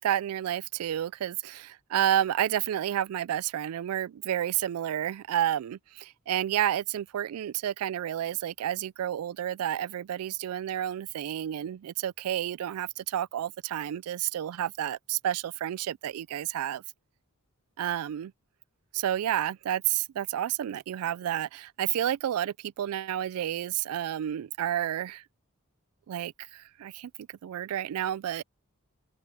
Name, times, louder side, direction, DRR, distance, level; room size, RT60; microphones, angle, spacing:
voice 1, 0.0-16.8 17.8-18.3 18.9-25.2 26.1-28.4, right 11 dB, 90° right, 0.3 m, -30 dB
open air
head